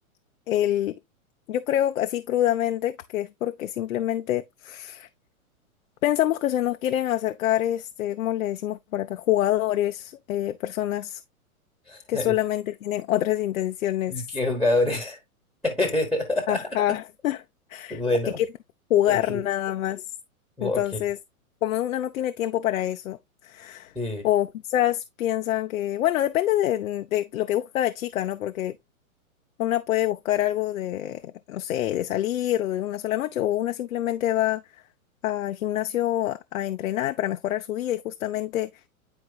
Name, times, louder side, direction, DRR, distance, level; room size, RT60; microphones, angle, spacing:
voice 1, 0.5-1.0 1.5-5.1 6.0-11.2 12.1-14.1 16.5-17.4 17.7-18.0 18.4-18.5 18.9-20.1 20.6-21.2 21.6-23.9 24.2-28.7 29.6-34.6 35.2-38.9, left 13 dB, 65° left, 0.7 m, -26 dB
voice 2, 11.9-12.3 14.1-15.2 15.6-16.7 17.9-18.4 19.1-19.4 20.6-21.0 23.9-24.2, left 2 dB, ahead, 1.2 m, -26 dB
9.9 x 4.4 x 2.3 m
hypercardioid pair, 145°, 43 cm